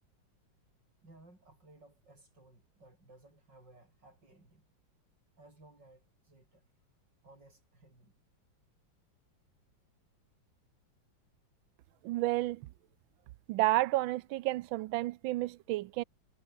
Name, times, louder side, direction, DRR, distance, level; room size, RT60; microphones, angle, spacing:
voice 1, 1.0-4.7 5.4-6.7 7.2-8.2, right 2 dB, 60° right, 8.7 m, -59 dB
voice 2, 12.0-12.6 13.5-16.0, right 17 dB, 85° right, 1.4 m, -31 dB
omnidirectional pair, 2.1 m